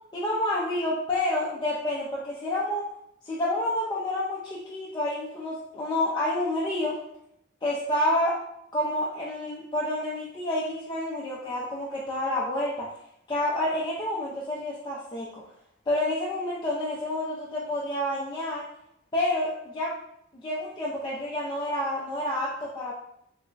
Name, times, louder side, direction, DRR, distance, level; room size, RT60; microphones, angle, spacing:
voice 1, 0.1-2.9 3.2-7.0 7.6-8.4 8.7-12.9 13.3-15.4 15.9-18.7 19.1-19.9 20.3-22.9, left 1 dB, 20° left, -5 dB, 0.4 m, -29 dB
3.2 x 2.1 x 3.7 m, 0.76 s
head